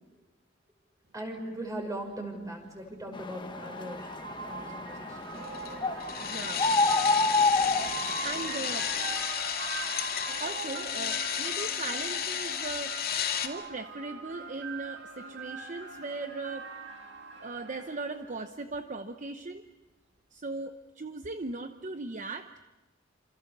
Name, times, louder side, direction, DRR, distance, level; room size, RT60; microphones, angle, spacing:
voice 1, 1.1-4.1 4.5-5.3, right 1 dB, 20° right, 3 dB, 5.8 m, -39 dB
sound 1, 1.3-1.4 2.9-18.5, right 4 dB, 65° right, 2.6 m, -42 dB
sound 2, 3.1-8.7, left 3 dB, 25° left, 1.3 m, -29 dB
sound 3, 5.4-13.5, left 9 dB, 55° left, 2.4 m, -33 dB
voice 2, 6.2-6.7 8.2-8.9 10.3-12.9 13.4-16.7 17.4-19.7 20.3-22.5, right 3 dB, 40° right, 8 dB, 0.9 m, -38 dB
29.0 x 26.5 x 6.8 m, 1.2 s
head